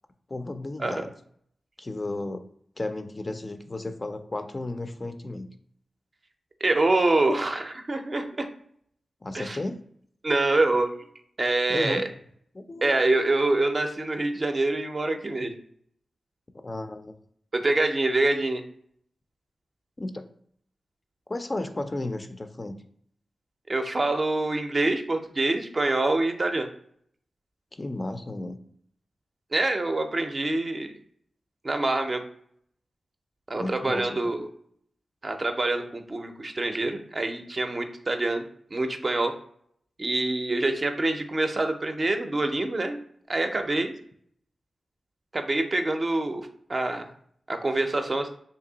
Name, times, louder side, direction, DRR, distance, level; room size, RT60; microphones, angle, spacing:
voice 1, 0.3-1.1 1.8-2.4 2.8-5.5 9.2-9.8 11.7-12.0 12.5-12.9 16.6-17.1 20.0-20.3 21.3-22.7 27.7-28.6 33.5-34.3, left 2 dB, 30° left, 8 dB, 0.3 m, -33 dB
voice 2, 6.6-8.5 9.3-9.6 10.2-10.9 11.4-12.1 12.8-15.5 17.5-18.6 23.7-26.7 29.5-30.9 31.6-32.2 33.5-34.5 35.2-38.4 38.7-39.3 40.0-43.0 43.3-44.0 45.3-47.1 47.5-48.3, right 2 dB, 40° right, 6 dB, 0.5 m, -25 dB
2.9 x 2.7 x 3.8 m, 0.65 s
cardioid pair, 65°, 0 cm